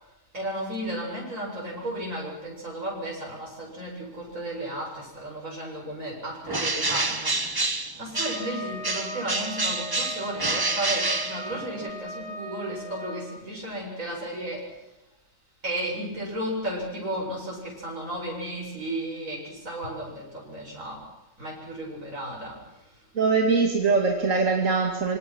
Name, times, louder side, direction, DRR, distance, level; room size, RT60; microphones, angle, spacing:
voice 1, 0.3-7.4 8.0-14.6 15.6-21.0 21.4-22.6, right 1 dB, 85° right, -3 dB, 8.4 m, -34 dB
Bird, 6.5-8.6 8.8-11.9, right 2 dB, 20° right, 1.0 m, -28 dB
Wind instrument woodwind instrument, 8.1-13.3, equal, 45° left, 4.4 m, -38 dB
voice 2, 23.1-25.2, right 4 dB, 70° right, 1 dB, 2.8 m, -22 dB
27.0 x 25.5 x 6.3 m, 0.94 s
omnidirectional pair, 1.4 m